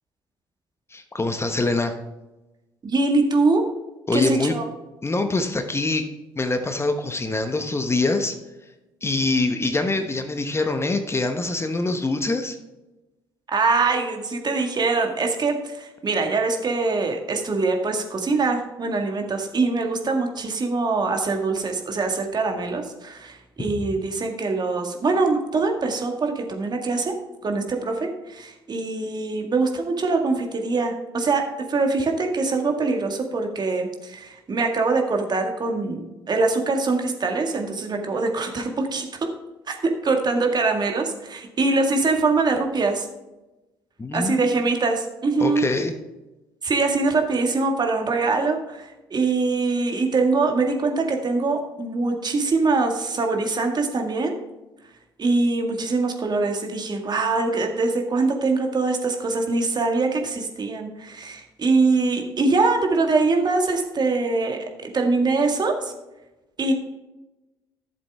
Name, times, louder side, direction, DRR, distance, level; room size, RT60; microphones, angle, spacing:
voice 1, 0.9-2.0 4.1-4.6 5.0-6.0 6.4-8.3 9.0-12.6 44.0-44.5 45.4-45.9, left 2 dB, 20° left, 7 dB, 1.1 m, -24 dB
voice 2, 2.8-3.7 4.1-4.7 13.5-27.2 27.4-39.3 39.7-43.1 44.1-45.7 46.6-54.3 55.2-65.9 66.6-66.7, right 3 dB, 40° right, 3 dB, 1.9 m, -23 dB
11.5 x 7.3 x 3.6 m, 1.0 s
hypercardioid pair, 50°, 11 cm